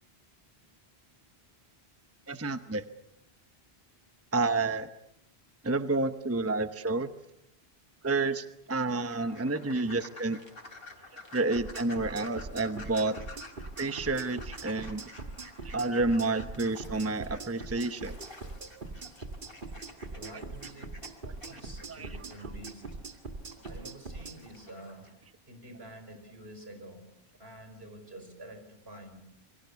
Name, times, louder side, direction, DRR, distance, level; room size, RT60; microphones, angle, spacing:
voice 1, 2.3-2.8 4.3-4.9 5.6-7.1 8.0-10.4 11.3-13.2 13.8-15.0 15.6-18.2 21.9-22.1, right 3 dB, 15° right, 9 dB, 0.9 m, -29 dB
sound 1, 9.1-25.1, left 2 dB, 60° left, 3.9 m, -51 dB
voice 2, 10.7-11.0 19.8-21.0 21.5-23.0 23.6-27.1 27.4-29.3, right 1 dB, 75° right, 6 dB, 5.2 m, -48 dB
sound 2, 11.6-24.4, right 3 dB, 55° right, 2.3 m, -42 dB
27.5 x 24.0 x 7.0 m, 0.83 s
omnidirectional pair, 1.1 m